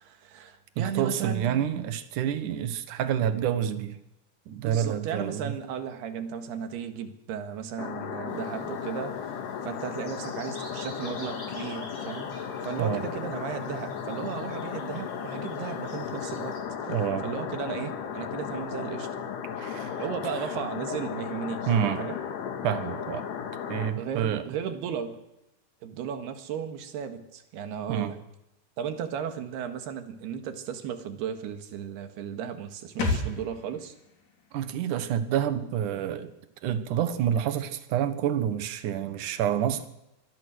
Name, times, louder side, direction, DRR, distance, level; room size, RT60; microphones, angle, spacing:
voice 1, 0.0-1.7 4.6-9.2 9.6-12.3 12.6-16.6 16.8-16.9 17.2-19.1 20.0-22.2 24.0-25.2 25.8-28.2 28.8-34.0, right 8 dB, 75° right, 7 dB, 3.7 m, -35 dB
voice 2, 0.8-4.0 4.5-5.5 12.8-13.1 16.9-17.2 19.6-20.0 21.7-22.0 22.6-23.3 23.7-24.4 27.9-28.1 34.5-36.3 36.6-39.9, right 9 dB, 60° right, 10 dB, 2.5 m, -28 dB
sound 1, 7.8-23.9, left 7 dB, 75° left, 4.0 m, -35 dB
Bird vocalization bird call bird song, 8.3-16.6, equal, 25° left, 8.1 m, -50 dB
sound 2, 33.0-36.5 36.8-36.9, left 2 dB, 55° left, 4.8 m, -35 dB
24.5 x 19.0 x 6.5 m, 0.92 s
omnidirectional pair, 4.8 m